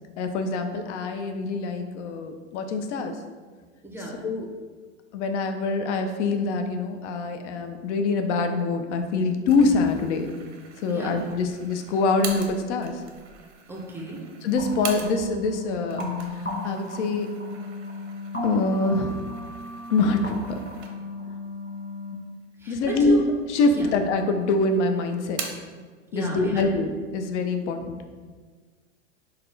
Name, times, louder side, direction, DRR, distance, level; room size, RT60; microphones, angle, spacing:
voice 1, 0.2-3.2 4.2-4.5 5.1-10.3 10.8-13.0 14.4-16.0 16.3-17.3 18.4-19.2 19.9-20.6 22.7-23.2 23.5-25.4 26.1-28.0, left 3 dB, 75° left, 6 dB, 0.6 m, -25 dB
voice 2, 3.8-4.2 10.9-11.2 13.7-14.2 22.6-23.2 23.7-23.9 26.1-26.7, right 2 dB, 5° right, -1 dB, 0.4 m, -33 dB
sound 1, 9.5-15.5 15.8-21.3 21.7-21.8 22.6-23.3 23.6-24.4 24.7-25.8, right 6 dB, 85° right, 0.8 m, -42 dB
sound 2, 14.6-22.1, left 2 dB, 20° left, 0.8 m, -35 dB
4.0 x 2.2 x 3.9 m, 1.5 s
hypercardioid pair, 120°, 35 cm